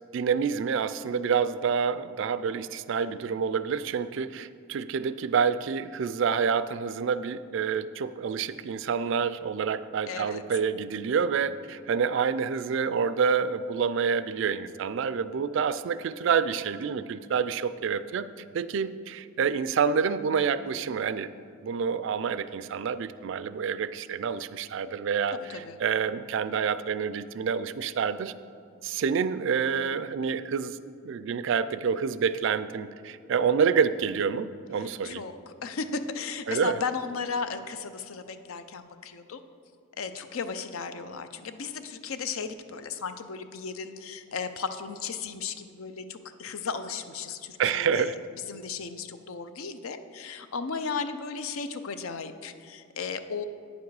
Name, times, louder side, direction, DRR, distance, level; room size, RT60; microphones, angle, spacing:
voice 1, 0.1-18.3 18.5-21.3 21.6-28.3 28.8-30.8 31.0-35.2 36.5-36.8 47.6-48.1, right 6 dB, 60° right, 14 dB, 0.3 m, -28 dB
voice 2, 10.1-10.4 25.3-25.8 34.8-39.4 40.0-48.2 48.5-53.4, left 5 dB, 75° left, 10 dB, 0.5 m, -35 dB
9.2 x 7.1 x 4.8 m, 2.4 s
head